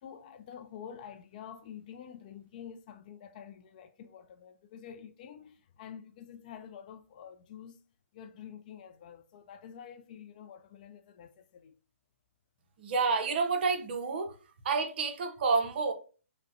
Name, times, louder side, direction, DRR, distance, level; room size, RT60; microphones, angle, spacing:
voice 1, 0.0-7.8 8.1-11.7, left 8 dB, 35° left, 0.3 m, -48 dB
voice 2, 12.8-14.3 14.6-15.9, right 4 dB, 45° right, 0.6 m, -29 dB
4.8 x 2.1 x 2.5 m
figure-of-eight pair, 130°, 8 cm